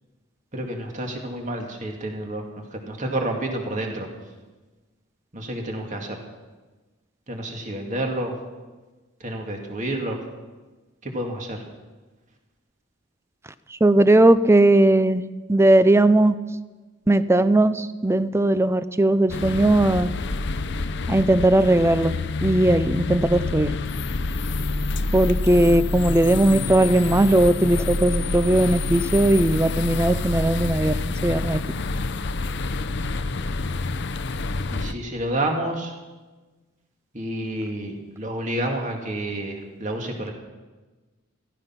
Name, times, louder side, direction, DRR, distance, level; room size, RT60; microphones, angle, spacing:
voice 1, 0.5-4.1 5.3-6.2 7.3-8.3 9.2-10.2 11.0-11.6 34.7-35.9 37.1-40.3, right 1 dB, 35° right, 2 dB, 2.2 m, -29 dB
voice 2, 13.7-15.2 15.5-16.3 17.1-20.1 21.1-22.1 22.4-23.8 25.1-31.6, right 1 dB, 15° right, 14 dB, 0.5 m, -18 dB
sound 1, 19.3-34.9, left 3 dB, 60° left, 0.7 m, -27 dB
15.0 x 15.0 x 5.9 m, 1.3 s
head